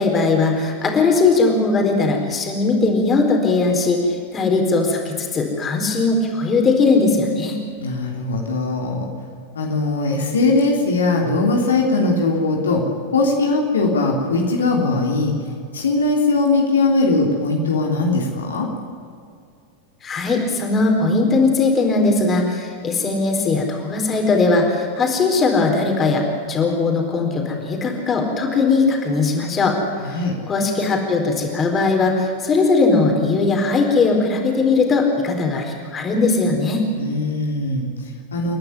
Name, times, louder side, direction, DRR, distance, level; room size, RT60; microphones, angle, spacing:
voice 1, 0.0-7.6 20.0-29.8 30.5-36.9, left 3 dB, 20° left, 2 dB, 4.3 m, -19 dB
voice 2, 7.8-9.1 9.5-12.8 13.1-15.3 15.7-18.7 30.0-30.3 37.0-38.5, left 3 dB, 70° left, 0 dB, 3.1 m, -20 dB
29.5 x 11.5 x 9.8 m, 2.3 s
figure-of-eight pair, 90°, 0 cm